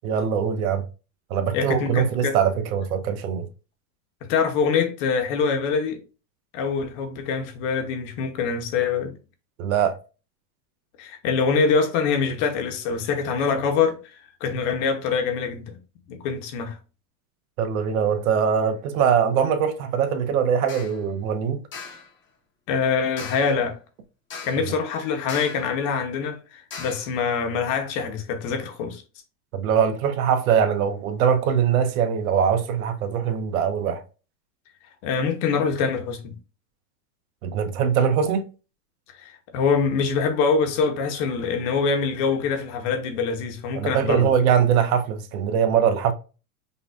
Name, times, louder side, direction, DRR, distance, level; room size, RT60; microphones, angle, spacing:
voice 1, 0.0-0.8 1.3-3.5 9.6-10.0 17.6-21.6 29.5-34.0 37.4-38.4 43.7-46.1, right 7 dB, 80° right, 0.9 m, -22 dB
voice 2, 1.5-2.4 4.2-6.0 6.5-9.2 11.0-15.8 16.1-16.8 22.7-23.8 24.4-29.0 35.0-36.4 39.2-44.3, left 5 dB, 60° left, 1.2 m, -24 dB
sound 1, 20.7-21.0 21.7-22.1 23.2-23.6 24.3-24.7 25.3-25.7 26.7-27.1, left 5 dB, 25° left, 1.0 m, -38 dB
5.4 x 2.7 x 2.4 m
supercardioid pair, 135°, 42 cm